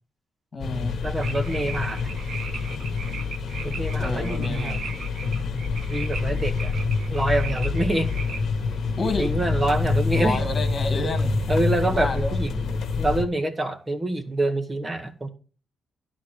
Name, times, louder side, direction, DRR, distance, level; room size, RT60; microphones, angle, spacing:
voice 1, 0.5-1.0 4.0-4.8 9.0-9.3 10.1-11.4 11.8-12.4, left 2 dB, 35° left, 2.0 m, -29 dB
sound 1, 0.6-13.2, left 4 dB, 65° left, 1.1 m, -27 dB
voice 2, 1.0-2.1 3.6-4.8 5.9-6.7 7.1-8.1 9.2-10.4 11.5-12.7 13.0-15.3, right 2 dB, 20° right, 1.2 m, -26 dB
sound 2, 1.2-11.4 11.7-12.1, right 5 dB, 60° right, 1.2 m, -40 dB
11.5 x 4.1 x 6.3 m
cardioid pair, 130°, 0 cm